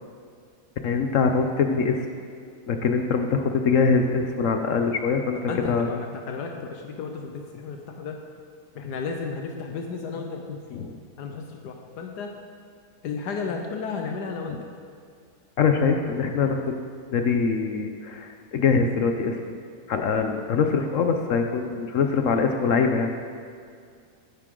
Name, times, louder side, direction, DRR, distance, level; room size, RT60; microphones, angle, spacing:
voice 1, 0.8-2.1 2.7-5.9 10.7-11.0 15.6-16.8 17.1-19.6 19.9-23.1, left 5 dB, 65° left, 5 dB, 0.9 m, -23 dB
voice 2, 5.3-8.2 8.7-10.8 11.2-12.3 13.0-14.6, left 5 dB, 80° left, 3 dB, 1.4 m, -33 dB
12.0 x 9.5 x 3.8 m, 2.2 s
omnidirectional pair, 1.8 m